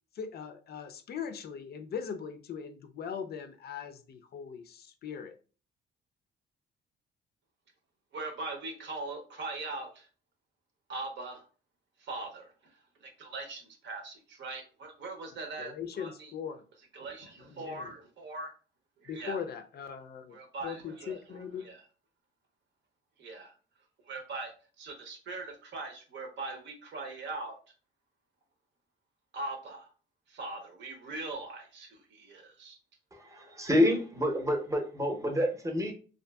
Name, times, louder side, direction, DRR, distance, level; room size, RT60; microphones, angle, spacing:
voice 1, 0.1-5.4 15.6-16.6 17.6-17.9 19.1-20.4 20.6-21.7, left 7 dB, 55° left, 7 dB, 0.4 m, -40 dB
voice 2, 8.1-10.1 10.9-11.5 12.0-16.3 16.9-18.5 19.0-19.4 20.3-21.9 23.2-23.6 24.0-27.6 29.3-29.9 30.3-32.8, right 3 dB, 65° right, 4 dB, 0.7 m, -41 dB
voice 3, 33.1-35.9, left 1 dB, 15° right, 3 dB, 0.7 m, -28 dB
2.5 x 2.5 x 2.2 m, 0.37 s
cardioid pair, 90°, 20 cm